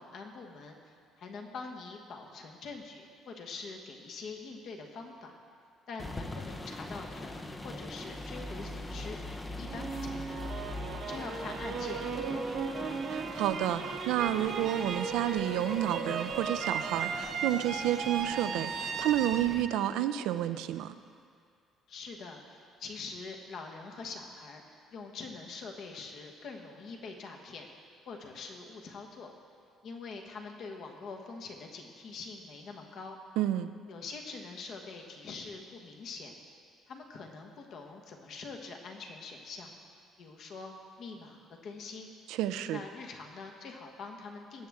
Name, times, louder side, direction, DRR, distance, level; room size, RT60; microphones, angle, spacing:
voice 1, 0.0-5.4 5.9-10.5 11.1-13.0 21.9-27.7 28.1-29.3 29.8-33.2 33.9-36.3 36.9-39.7 40.2-42.1 42.7-44.7, left 4 dB, 50° left, 2 dB, 1.2 m, -44 dB
sound 1, 6.0-19.6, left 1 dB, 15° left, 0.6 m, -43 dB
sound 2, 9.7-20.7, right 5 dB, 50° right, 0.9 m, -36 dB
voice 2, 13.1-20.9 33.4-33.7 42.3-42.8, right 12 dB, 90° right, 11 dB, 0.4 m, -30 dB
19.5 x 7.6 x 3.6 m, 2.2 s
cardioid pair, 160°, 0 cm